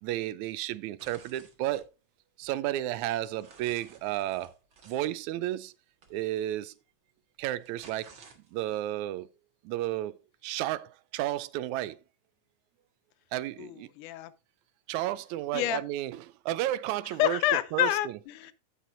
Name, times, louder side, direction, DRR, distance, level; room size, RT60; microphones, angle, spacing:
voice 1, 0.0-1.9 2.4-4.5 4.9-5.7 6.1-6.7 7.4-8.1 8.5-9.3 9.7-10.2 10.4-12.0 13.3-13.9 14.9-16.1 16.5-17.4 17.7-17.9, right 14 dB, 80° right, 2.0 m, -32 dB
sound 1, 1.0-1.9 2.4-5.1 6.0-6.2 7.4-8.8, right 5 dB, 45° right, 2.2 m, -55 dB
voice 2, 13.6-14.3 15.5-15.8 17.2-18.5, left 13 dB, 90° left, 2.3 m, -28 dB
15.0 x 6.0 x 2.6 m
omnidirectional pair, 3.4 m